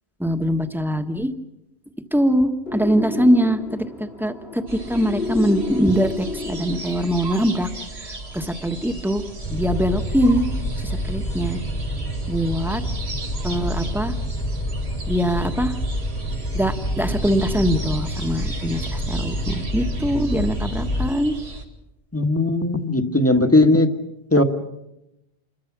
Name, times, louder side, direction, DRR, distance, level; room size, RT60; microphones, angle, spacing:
voice 1, 0.2-1.3 2.1-7.7 8.0-9.2 9.5-10.5 10.8-11.6 12.3-12.8 13.4-14.1 15.1-15.7 16.5-21.4, equal, ahead, 6 dB, 1.4 m, -22 dB
sound 1, 2.7-7.3, left 3 dB, 70° left, 3.6 m, -31 dB
sound 2, 4.7-21.6, right 2 dB, 90° right, 2.5 m, -37 dB
sound 3, 9.4-21.1, equal, 90° left, 4.7 m, -27 dB
voice 2, 22.1-23.9 24.3-24.4, left 2 dB, 15° left, 6 dB, 1.5 m, -17 dB
27.5 x 22.5 x 6.1 m, 0.90 s
omnidirectional pair, 1.1 m